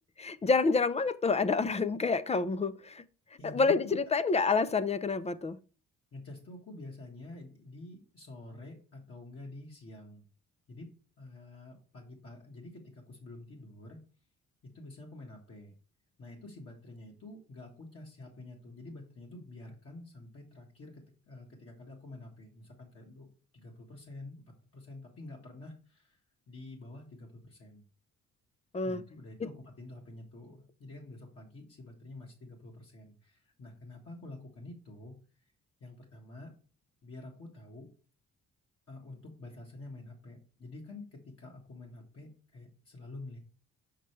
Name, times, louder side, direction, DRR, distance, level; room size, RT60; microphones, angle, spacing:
voice 1, 0.2-3.0 3.4-5.6 28.7-29.0, left 4 dB, 20° left, 0.4 m, -28 dB
voice 2, 3.4-3.9 6.1-10.2 10.7-10.9 11.2-14.0 14.7-15.7 16.2-23.3 23.5-24.4 24.7-26.2 26.5-27.8 28.8-35.1 35.8-36.5 37.0-37.9 38.9-43.4, left 2 dB, 50° left, 1.6 m, -48 dB
6.5 x 5.5 x 3.2 m
cardioid pair, 90°, 30 cm